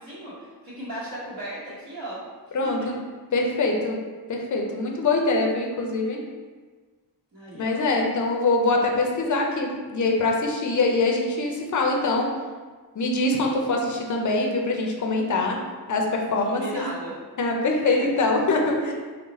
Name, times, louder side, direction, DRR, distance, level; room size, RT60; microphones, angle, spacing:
voice 1, 0.0-2.3 2.6-2.9 7.3-7.8 16.4-17.1 17.7-18.1 18.8-18.9, equal, 55° right, -12 dB, 1.2 m, -36 dB
voice 2, 2.5-3.0 3.3-4.0 4.3-6.2 7.5-12.3 13.0-15.6 15.9-16.8 17.4-18.9, left 2 dB, 50° left, 1 dB, 0.5 m, -23 dB
3.9 x 2.1 x 4.0 m, 1.4 s
wide cardioid pair, 135°, 40 cm